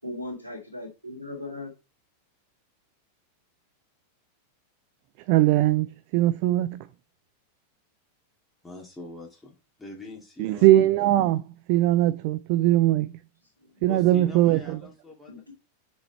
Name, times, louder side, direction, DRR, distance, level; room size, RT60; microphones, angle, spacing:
voice 1, 0.0-1.7 13.7-14.0 15.3-15.5, left 1 dB, 90° left, 2.1 m, -38 dB
voice 2, 5.3-6.9 10.4-13.1 13.8-14.8, right 14 dB, 45° right, 0.4 m, -21 dB
voice 3, 8.6-9.5 9.8-10.9 13.9-15.5, left 2 dB, 10° left, 2.4 m, -43 dB
6.2 x 4.9 x 4.4 m
figure-of-eight pair, 90°, 0 cm